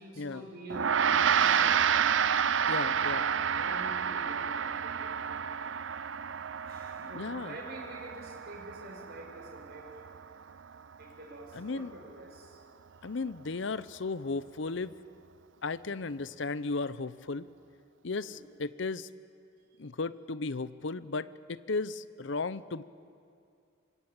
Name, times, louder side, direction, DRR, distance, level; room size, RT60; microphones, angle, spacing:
voice 1, 0.0-1.8 2.6-5.3 6.7-9.9 11.0-12.6 18.2-18.4, right 1 dB, 50° right, 0 dB, 6.1 m, -46 dB
Gong, 0.7-10.3, right 7 dB, 70° right, 0.6 m, -29 dB
voice 2, 2.7-3.3 7.0-7.6 11.5-11.9 13.0-15.0 15.6-17.5 18.0-19.1 19.8-22.8, left 3 dB, 65° left, 16 dB, 0.7 m, -35 dB
25.0 x 22.0 x 8.9 m, 2.4 s
head